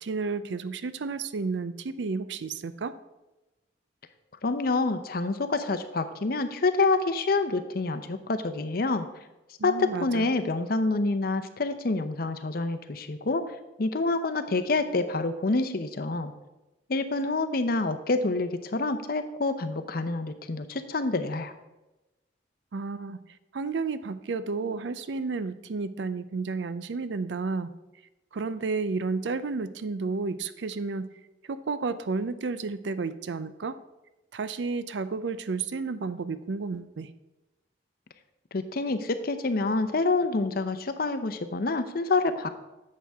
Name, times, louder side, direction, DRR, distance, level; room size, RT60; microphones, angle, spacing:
voice 1, 0.0-2.9 9.6-10.2 22.7-23.2 23.5-27.7 28.3-31.1 31.5-33.7 34.3-37.1, right 4 dB, 80° right, 13 dB, 0.5 m, -31 dB
voice 2, 4.4-9.1 9.6-13.4 13.8-16.3 16.9-21.5 38.5-42.5, left 3 dB, 55° left, 10 dB, 0.7 m, -27 dB
11.0 x 7.5 x 3.5 m, 1.0 s
head